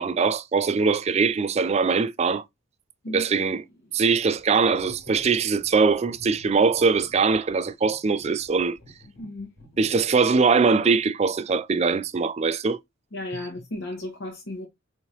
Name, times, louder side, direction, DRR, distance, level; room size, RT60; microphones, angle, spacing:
voice 1, 0.0-2.4 3.1-3.6 3.9-8.8 9.8-12.8, right 4 dB, 30° right, 0.4 m, -22 dB
sound 1, 4.4-10.5, left 1 dB, 80° left, 1.7 m, -49 dB
voice 2, 13.1-14.7, left 1 dB, 65° left, 1.0 m, -34 dB
4.9 x 2.9 x 2.8 m
head